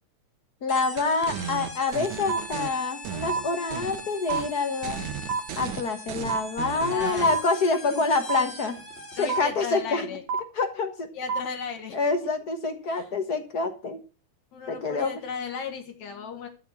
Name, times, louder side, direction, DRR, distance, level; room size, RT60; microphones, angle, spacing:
voice 1, 0.6-5.0 5.6-8.8 9.2-10.1 10.6-11.1 11.9-14.0 14.7-15.2, left 3 dB, 50° left, 7 dB, 1.2 m, -26 dB
sound 1, 0.7-9.6, left 2 dB, 20° left, 2.6 m, -42 dB
sound 2, 1.0-2.7 3.0-4.0 4.3-4.5 4.8-7.4, right 9 dB, 90° right, 2.6 m, -35 dB
sound 3, 2.3-2.4 3.3-3.4 4.3-4.4 5.3-5.4 6.3-6.4 7.3-7.4 8.3-8.4 9.3-9.4 10.3-10.4 11.3-11.4, right 5 dB, 70° right, 2.8 m, -26 dB
voice 2, 6.9-7.4 7.9-8.0 9.1-10.2 11.1-12.0 12.9-13.1 14.5-16.5, left 6 dB, 70° left, 4 dB, 3.0 m, -35 dB
13.0 x 6.7 x 7.3 m, 0.34 s
omnidirectional pair, 3.3 m